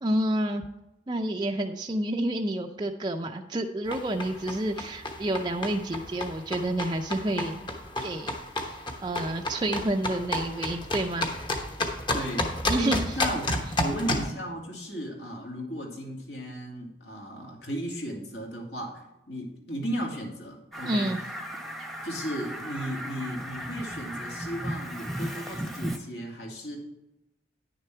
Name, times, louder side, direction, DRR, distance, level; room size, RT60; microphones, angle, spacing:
voice 1, 0.0-0.6 1.1-7.7 8.0-8.4 9.0-11.3 12.7-13.2 20.9-21.2, right 1 dB, 25° right, 3 dB, 0.5 m, -29 dB
sound 1, 3.9-14.3, left 1 dB, 25° left, 1.1 m, -31 dB
voice 2, 12.1-21.1 22.0-26.8, equal, 75° left, -1 dB, 2.7 m, -35 dB
Fowl, 20.7-26.0, equal, ahead, 0.9 m, -36 dB
10.0 x 6.7 x 4.5 m, 0.92 s
head